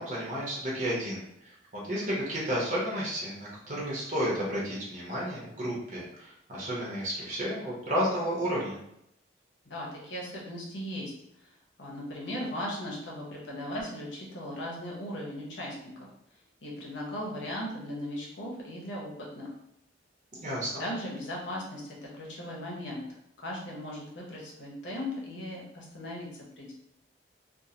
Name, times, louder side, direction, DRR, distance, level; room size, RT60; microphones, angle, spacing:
voice 1, 0.0-8.8 20.4-20.8, equal, 45° right, -5 dB, 0.9 m, -32 dB
voice 2, 9.7-11.1 11.8-16.1 16.6-19.5 20.8-26.7, left 1 dB, 85° left, -3 dB, 0.9 m, -38 dB
2.6 x 2.5 x 2.8 m, 0.77 s
head